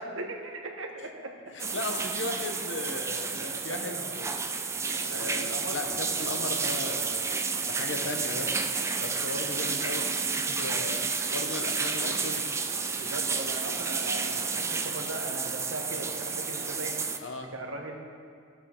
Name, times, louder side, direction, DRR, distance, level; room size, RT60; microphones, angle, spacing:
voice 1, 0.0-1.3 3.7-4.1 4.9-5.8 12.9-17.0 17.5-17.9, right 2 dB, 90° right, 2 dB, 1.4 m, -39 dB
voice 2, 1.5-4.4 5.1-7.3 7.7-8.5 9.0-10.1 10.4-11.0 11.3-12.5 14.3-14.4 17.2-17.5, left 2 dB, 70° left, 4 dB, 1.1 m, -36 dB
sound 1, 1.6-17.2, right 5 dB, 15° right, 0.4 m, -31 dB
15.0 x 8.1 x 4.6 m, 2.3 s
head